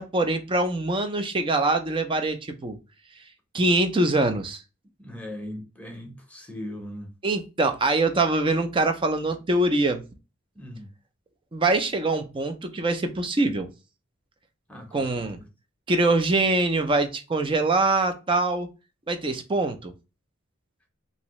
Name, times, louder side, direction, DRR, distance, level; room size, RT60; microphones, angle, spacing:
voice 1, 0.0-2.8 3.5-4.6 7.2-10.0 11.5-13.7 14.9-15.4 15.9-18.7 19.1-19.9, right 2 dB, 25° right, 0.5 m, -24 dB
voice 2, 5.0-7.1 10.6-10.9 14.7-15.5, left 1 dB, 5° left, 0.8 m, -39 dB
2.9 x 2.7 x 3.0 m
head